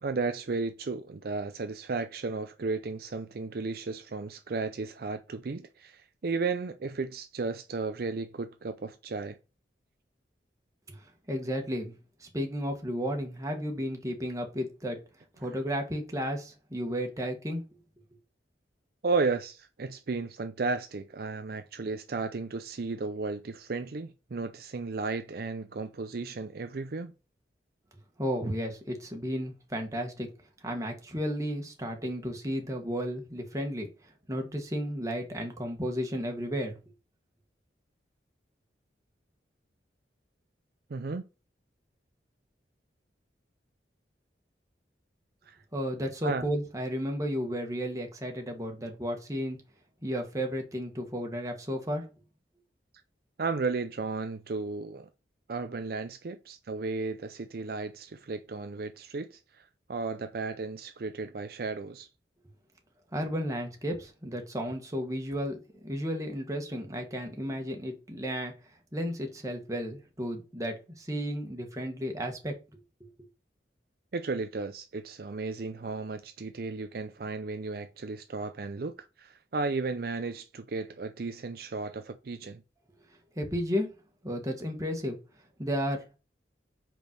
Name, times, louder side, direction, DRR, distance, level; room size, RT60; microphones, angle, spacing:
voice 1, 0.0-9.4 19.0-27.1 40.9-41.2 45.4-45.6 46.2-46.4 53.4-55.1 55.5-62.1 74.1-82.6, right 4 dB, 55° right, 0.5 m, -34 dB
voice 2, 10.9-15.0 15.4-17.6 28.2-30.3 30.6-33.9 34.3-36.8 45.7-49.6 50.0-52.1 63.1-65.6 65.8-68.5 68.9-72.5 83.3-83.9 84.2-85.2 85.6-86.0, equal, 20° right, 1.6 m, -33 dB
5.2 x 4.5 x 6.0 m
head